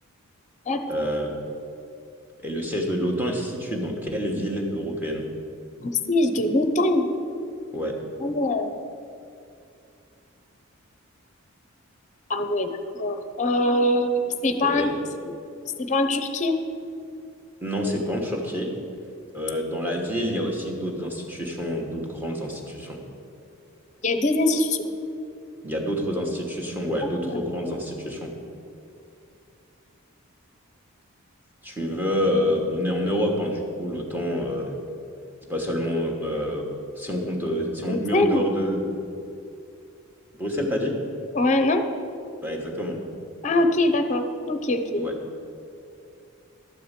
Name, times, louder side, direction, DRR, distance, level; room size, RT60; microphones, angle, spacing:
voice 1, 0.9-1.4 2.4-5.2 7.7-7.9 14.6-14.9 17.6-18.7 19.3-23.0 25.6-28.3 31.6-34.8 35.5-36.6 37.0-39.0 40.4-40.9 42.4-43.0 45.0-45.1, equal, 10° right, 0 dB, 1.2 m, -27 dB
voice 2, 5.8-7.1 8.2-8.7 12.3-14.9 15.8-16.6 24.0-24.9 37.9-38.4 41.3-41.9 43.4-45.1, left 1 dB, 35° left, 8 dB, 0.7 m, -23 dB
12.0 x 4.8 x 8.1 m, 2.6 s
head